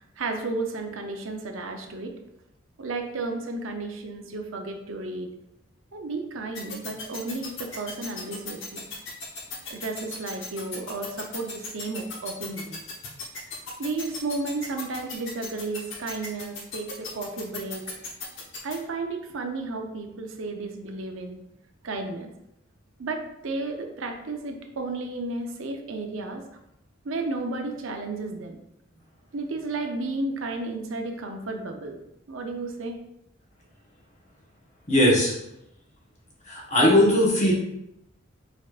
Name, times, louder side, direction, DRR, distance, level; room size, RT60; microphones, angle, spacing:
voice 1, 0.2-2.2 2.8-5.3 5.9-8.9 9.7-12.8 13.8-17.9 18.6-21.4 21.8-22.3 23.0-26.4 27.0-28.6 29.3-32.0 32.3-33.0, right 3 dB, 75° right, 4 dB, 0.6 m, -33 dB
sound 1, 6.5-18.7, left 4 dB, 65° left, 1.0 m, -36 dB
voice 2, 34.9-35.3 36.5-37.5, left 1 dB, 35° left, -4 dB, 1.2 m, -19 dB
4.7 x 4.2 x 2.4 m, 0.81 s
head